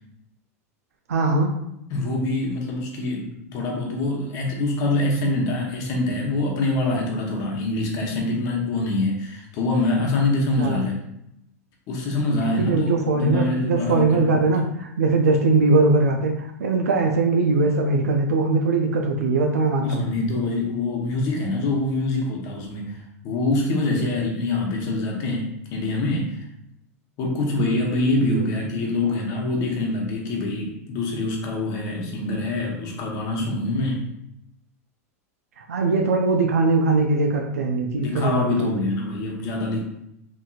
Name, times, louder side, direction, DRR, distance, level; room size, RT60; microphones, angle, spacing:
voice 1, 1.1-1.5 10.6-10.8 12.6-16.3 16.6-20.1 28.3-28.4 35.7-38.9, right 3 dB, 90° right, 3 dB, 0.4 m, -21 dB
voice 2, 1.9-11.0 11.9-14.5 19.8-23.0 23.2-26.4 27.2-34.1 38.0-39.8, left 2 dB, 50° left, -1 dB, 1.0 m, -25 dB
3.0 x 2.7 x 2.4 m, 0.80 s
hypercardioid pair, 105°, 8 cm